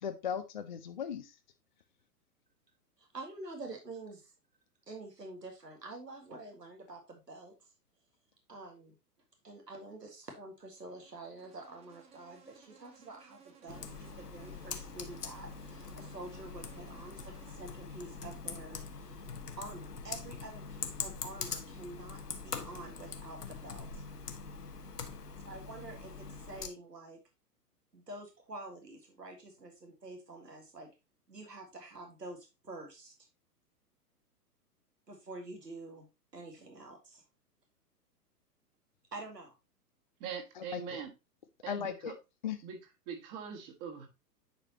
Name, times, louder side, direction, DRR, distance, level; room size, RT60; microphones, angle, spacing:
voice 1, 0.0-1.4 40.6-41.0 41.7-42.1 42.4-42.6, left 8 dB, 35° left, 0.4 m, -37 dB
voice 2, 3.0-4.3 4.9-7.5 8.5-8.9 9.4-19.2 19.6-24.0 25.5-27.2 27.9-30.9 31.3-33.1 35.1-36.1 36.3-37.2 39.1-39.5, right 2 dB, 80° right, 1.8 m, -47 dB
Insect, 10.7-18.9, right 7 dB, 15° right, 0.8 m, -61 dB
Computer keyboard, 13.7-26.7, left 5 dB, 75° left, 1.3 m, -43 dB
voice 3, 40.2-41.1 41.6-42.1 42.6-42.8 43.1-44.1, right 6 dB, 30° right, 1.8 m, -42 dB
9.9 x 4.9 x 2.9 m
figure-of-eight pair, 110°, 48 cm